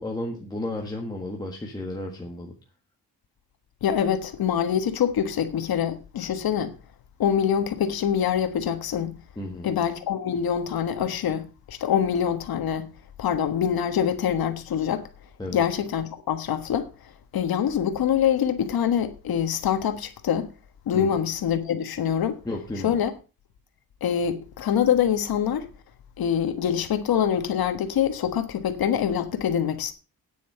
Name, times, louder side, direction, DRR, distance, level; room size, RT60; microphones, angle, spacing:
voice 1, 0.0-2.5 9.4-9.7 15.4-15.6 20.9-21.1 22.4-23.0, left 1 dB, 10° left, 1.5 m, -33 dB
voice 2, 3.8-6.7 7.2-9.1 9.6-12.9 13.2-15.0 15.5-16.9 17.3-20.5 20.9-22.4 22.8-23.1 24.0-25.7 26.2-29.9, left 8 dB, 75° left, 1.5 m, -25 dB
9.4 x 8.5 x 5.6 m
wide cardioid pair, 175°, 37 cm